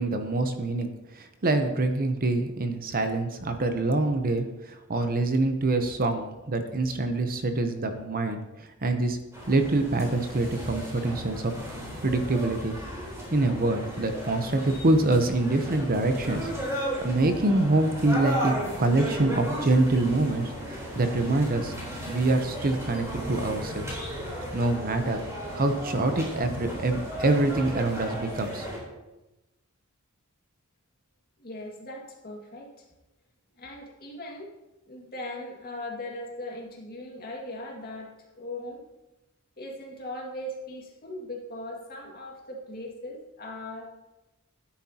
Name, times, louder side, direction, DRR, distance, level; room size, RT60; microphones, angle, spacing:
voice 1, 0.0-9.2 9.5-11.5 12.0-12.8 13.3-18.5 18.8-21.7 22.1-24.0 24.5-25.2 25.5-28.7, right 2 dB, 45° right, 7 dB, 0.8 m, -25 dB
sound 1, 9.3-28.8, equal, 15° right, 3.8 m, -35 dB
voice 2, 31.4-32.8 33.6-34.5 34.9-38.8 39.6-43.9, left 1 dB, 45° left, -1 dB, 2.1 m, -39 dB
12.5 x 10.0 x 2.9 m, 1.0 s
head